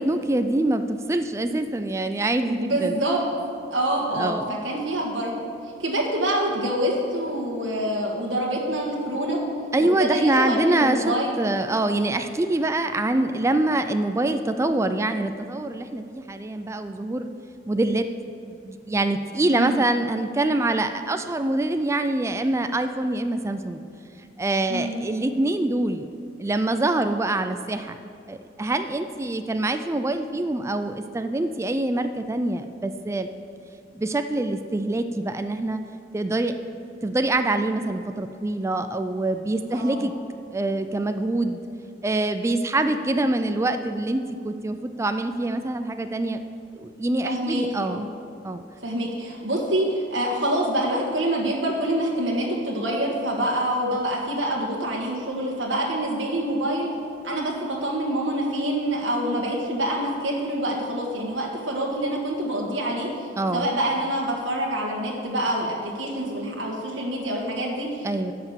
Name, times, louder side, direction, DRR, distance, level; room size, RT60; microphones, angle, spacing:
voice 1, 0.0-3.0 4.2-4.6 9.7-17.3 17.7-18.1 18.5-23.8 24.4-26.0 26.4-28.0 28.3-33.3 33.9-35.8 36.1-36.5 37.0-40.1 40.5-41.6 42.0-46.4 46.7-48.1 48.4-48.6 63.4-63.7 68.0-68.3, right 2 dB, 15° right, 8 dB, 0.3 m, -25 dB
voice 2, 2.5-3.2 3.7-4.3 4.6-5.3 5.8-9.4 9.8-11.3 19.5-19.8 24.7-25.0 39.7-40.0 47.2-48.1 48.8-56.9 57.2-68.3, right 1 dB, 70° right, -3 dB, 1.5 m, -26 dB
10.5 x 5.7 x 7.1 m, 2.5 s
head